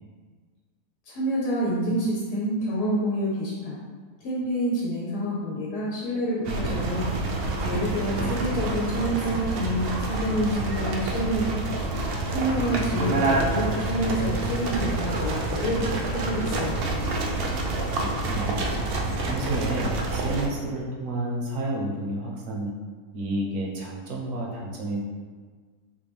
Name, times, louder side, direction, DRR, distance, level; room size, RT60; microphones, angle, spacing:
voice 1, 1.0-3.8 4.2-7.1 7.6-11.8 12.3-16.9, equal, 90° left, -5 dB, 1.3 m, -28 dB
sound 1, 6.4-20.5, right 2 dB, 90° right, 0.5 m, -27 dB
voice 2, 7.7-8.4 18.0-18.6 19.0-22.7 23.1-25.0, right 1 dB, 60° right, -2 dB, 1.1 m, -31 dB
4.1 x 3.0 x 3.4 m, 1.5 s
omnidirectional pair, 1.6 m